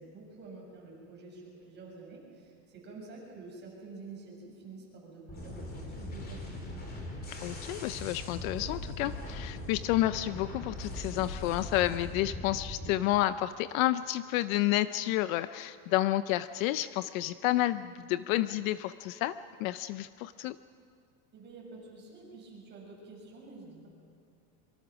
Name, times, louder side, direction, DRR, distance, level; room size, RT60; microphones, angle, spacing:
voice 1, 0.0-6.6 21.3-23.9, right 3 dB, 20° right, -3 dB, 7.1 m, -48 dB
sound 1, 5.3-12.9, left 1 dB, 20° left, 2.9 m, -40 dB
voice 2, 7.4-20.6, left 15 dB, 55° left, 14 dB, 0.6 m, -30 dB
25.5 x 24.5 x 6.1 m, 2.3 s
supercardioid pair, 165°, 48 cm